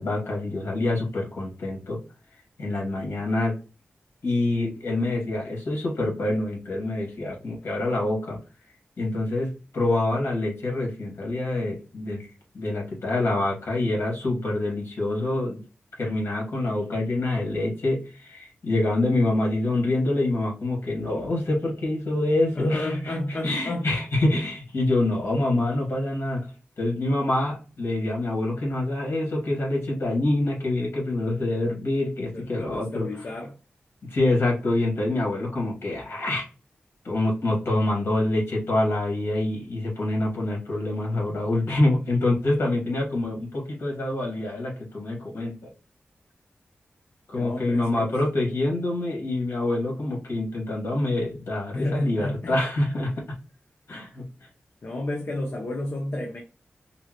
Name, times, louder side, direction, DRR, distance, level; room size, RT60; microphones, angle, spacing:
voice 1, 0.0-2.0 2.6-3.5 4.2-8.4 9.0-12.3 12.5-15.6 15.9-26.4 26.8-33.1 34.1-36.5 37.0-45.7 47.3-53.2 53.9-54.2, left 2 dB, 70° left, 2.1 m, -26 dB
voice 2, 22.5-23.9 32.3-33.5 47.3-48.1 51.7-52.6 54.8-56.4, left 1 dB, 55° left, 1.0 m, -31 dB
5.4 x 2.2 x 3.1 m
wide cardioid pair, 75°, 4 cm